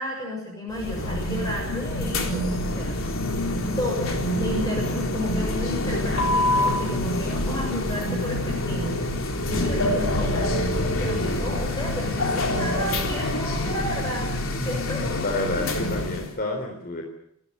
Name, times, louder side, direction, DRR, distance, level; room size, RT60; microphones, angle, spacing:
voice 1, 0.0-2.9 3.8-14.3 14.6-15.0 15.5-15.7, left 1 dB, 15° left, 0 dB, 6.6 m, -32 dB
sound 1, 0.7-16.3, left 1 dB, 65° left, 3.8 m, -26 dB
voice 2, 15.2-17.0, left 2 dB, 45° left, 3 dB, 3.9 m, -29 dB
29.0 x 13.5 x 9.7 m, 0.74 s
head